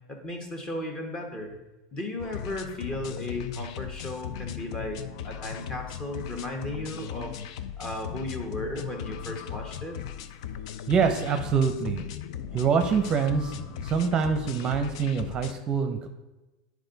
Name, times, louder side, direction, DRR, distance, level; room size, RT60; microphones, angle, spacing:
voice 1, 0.1-1.5 1.9-7.3 7.8-9.9, left 1 dB, 25° left, 2 dB, 1.5 m, -35 dB
sound 1, 2.2-15.5, left 9 dB, 70° left, 0.5 m, -38 dB
voice 2, 10.9-12.0 12.5-16.1, right 6 dB, 30° right, 6 dB, 0.7 m, -25 dB
9.8 x 4.8 x 4.0 m, 1.1 s
supercardioid pair, 130°, 3 cm